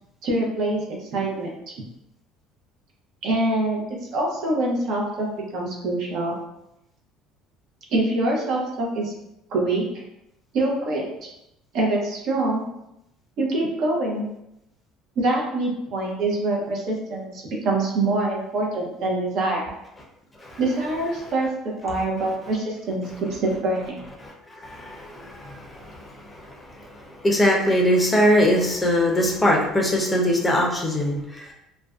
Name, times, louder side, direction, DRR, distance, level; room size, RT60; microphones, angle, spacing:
voice 1, 0.2-1.7 3.2-5.3 5.5-6.4 7.9-9.1 9.5-10.0 10.5-11.3 11.7-12.7 13.4-14.3 15.2-19.7 20.6-24.1, right 2 dB, 60° right, -2 dB, 0.7 m, -25 dB
voice 2, 24.2-31.5, equal, 15° left, -1 dB, 0.5 m, -22 dB
2.4 x 2.1 x 2.3 m, 0.84 s
cardioid pair, 115°, 0 cm